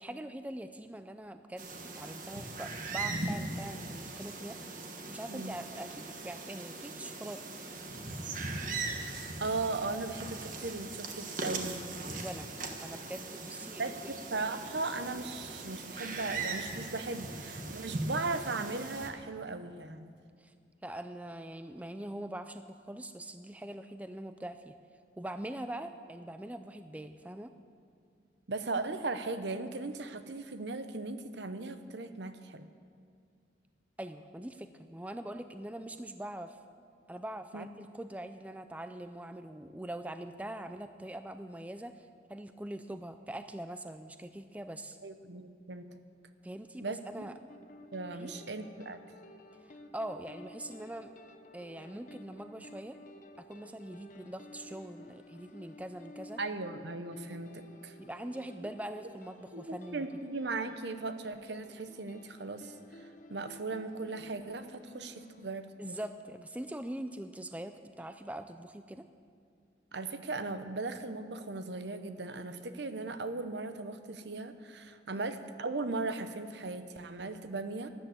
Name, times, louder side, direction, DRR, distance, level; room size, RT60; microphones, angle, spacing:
voice 1, 0.0-4.8 5.1-7.4 12.1-12.5 12.8-13.9 20.4-20.5 20.8-24.7 25.2-27.5 34.0-36.6 37.1-45.0 46.4-47.3 48.2-48.3 49.6-51.1 51.5-53.0 53.4-56.4 58.0-60.3 65.8-69.1 75.2-75.3, right 1 dB, 10° right, 9 dB, 0.4 m, -43 dB
sound 1, 1.6-19.1, right 3 dB, 45° right, 1.4 m, -40 dB
voice 2, 8.9-12.0 13.8-20.1 28.5-32.7 37.5-37.7 45.0-45.9 46.8-47.3 47.9-49.0 56.4-57.9 58.6-58.7 59.5-62.7 63.0-66.0 69.9-77.9, right 3 dB, 65° right, 10 dB, 0.8 m, -38 dB
sound 2, 47.5-65.5, left 1 dB, 45° left, 0.8 m, -54 dB
13.0 x 11.0 x 7.9 m, 2.3 s
head